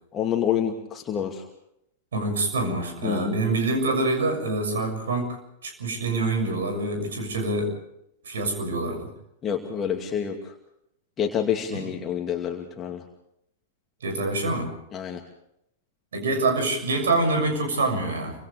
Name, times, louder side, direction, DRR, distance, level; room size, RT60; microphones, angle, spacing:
voice 1, 0.1-1.4 3.0-3.3 9.4-10.5 11.2-13.0 14.9-15.2, left 8 dB, 25° left, 2 dB, 2.4 m, -27 dB
voice 2, 2.1-5.4 5.6-7.7 8.2-9.1 11.7-11.9 14.0-14.7 16.1-18.3, right 2 dB, 65° right, 5 dB, 6.7 m, -26 dB
30.0 x 25.0 x 3.5 m, 0.77 s
figure-of-eight pair, 95°, 0 cm